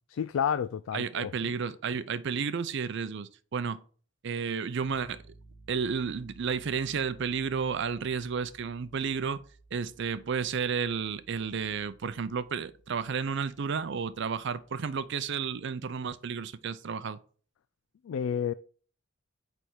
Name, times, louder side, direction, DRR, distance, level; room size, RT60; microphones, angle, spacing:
voice 1, 0.1-1.5 18.0-18.5, left 8 dB, 80° left, 0.3 m, -30 dB
voice 2, 0.9-3.8 4.2-5.2 5.7-9.4 9.7-17.2, right 6 dB, 60° right, 0.5 m, -32 dB
Piano, 4.8-15.6, right 2 dB, 55° left, 2.3 m, -57 dB
8.6 x 3.5 x 4.6 m
head